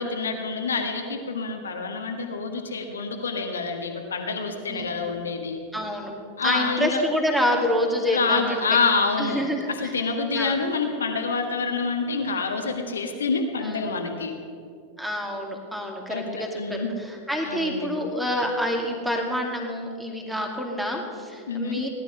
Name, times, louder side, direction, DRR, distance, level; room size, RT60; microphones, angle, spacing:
voice 1, 0.0-5.6 6.4-7.0 8.1-9.5 9.8-14.3 16.1-16.9 17.4-17.9 21.5-21.8, left 4 dB, 70° left, 4 dB, 1.4 m, -27 dB
voice 2, 4.7-5.0 5.7-6.1 6.4-8.6 9.2-9.9 10.3-10.6 13.6-14.0 15.0-21.9, equal, 5° right, 1 dB, 2.5 m, -27 dB
18.0 x 11.5 x 5.6 m, 2.3 s
figure-of-eight pair, 90°, 0 cm